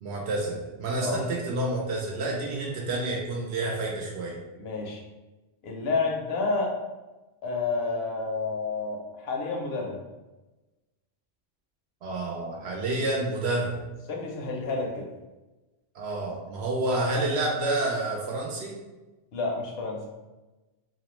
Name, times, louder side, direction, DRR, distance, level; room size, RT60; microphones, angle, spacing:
voice 1, 0.0-4.4 12.0-13.8 15.9-18.8, right 2 dB, 75° right, -2 dB, 0.8 m, -29 dB
voice 2, 4.5-5.0 5.6-6.8 7.4-10.0 14.1-15.1 19.3-20.0, left 3 dB, 70° left, 0 dB, 0.8 m, -30 dB
2.5 x 2.1 x 2.9 m, 1.1 s
omnidirectional pair, 1.1 m